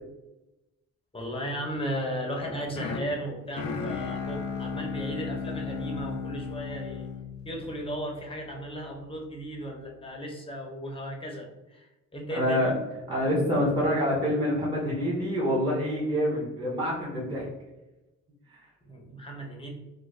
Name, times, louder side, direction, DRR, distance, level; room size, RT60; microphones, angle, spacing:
voice 1, 1.1-7.1 7.5-12.7 18.8-19.7, equal, 20° left, 0 dB, 0.7 m, -35 dB
sound 1, 2.4-8.5, left 5 dB, 70° left, 0.5 m, -35 dB
voice 2, 12.3-12.7 13.1-17.5 18.5-18.6, equal, 15° right, -6 dB, 0.8 m, -26 dB
2.4 x 2.2 x 3.2 m, 1.0 s
cardioid pair, 100°, 29 cm